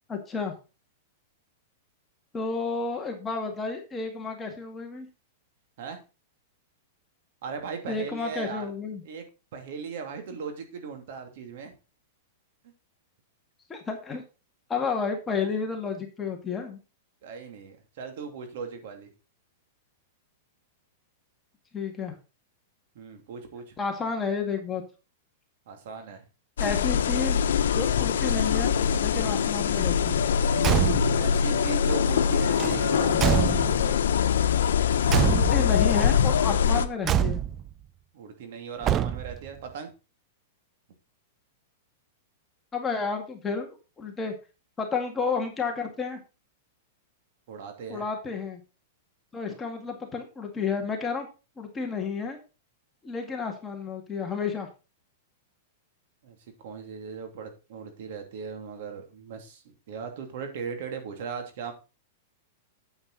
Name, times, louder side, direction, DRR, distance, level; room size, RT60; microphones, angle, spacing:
voice 1, 0.1-0.5 2.3-5.1 7.9-9.0 13.7-14.2 14.7-16.8 21.7-22.1 23.8-24.8 26.6-30.3 35.3-37.4 42.7-44.3 44.8-46.2 47.9-48.6 49.3-51.3 51.6-52.4 53.0-54.7, left 5 dB, 15° left, 2 dB, 2.0 m, -31 dB
voice 2, 7.4-8.7 9.0-9.2 9.5-11.7 17.2-19.1 22.9-23.7 25.7-26.2 31.2-34.0 38.1-39.9 47.5-48.1 56.2-56.4 56.6-61.7, right 6 dB, 60° right, 6 dB, 2.8 m, -38 dB
sound 1, 26.6-36.9, left 7 dB, 90° left, 0.9 m, -23 dB
Car / Truck / Slam, 30.6-31.3 32.6-34.0 35.1-35.9 37.0-37.7 38.8-39.5, right 10 dB, 25° right, 0.4 m, -26 dB
8.8 x 8.0 x 4.1 m, 0.30 s
supercardioid pair, 150°, 0 cm